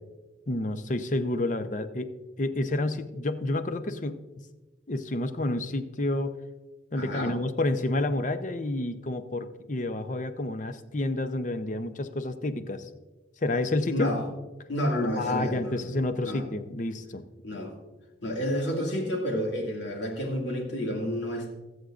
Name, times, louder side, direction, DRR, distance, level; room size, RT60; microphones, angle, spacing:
voice 1, 0.5-2.1 2.4-4.2 4.9-6.4 6.9-12.9 13.4-14.1 15.2-17.2, left 2 dB, 40° left, 10 dB, 0.6 m, -29 dB
voice 2, 6.9-7.4 13.9-14.2 14.7-15.8 16.2-16.4 17.4-17.7 18.2-21.6, equal, 75° left, 1 dB, 2.2 m, -30 dB
22.5 x 7.9 x 2.5 m, 1.2 s
head